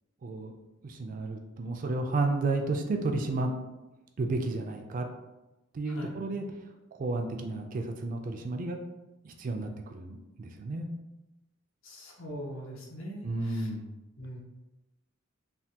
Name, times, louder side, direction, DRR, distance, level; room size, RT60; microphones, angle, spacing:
voice 1, 0.2-0.5 0.8-3.5 4.2-5.1 5.7-6.4 6.9-8.8 9.2-10.9 13.2-13.9, right 2 dB, 40° right, 4 dB, 0.3 m, -32 dB
voice 2, 11.8-13.7 14.2-14.4, equal, 70° left, -1 dB, 0.7 m, -42 dB
3.3 x 2.2 x 2.8 m, 1.0 s
head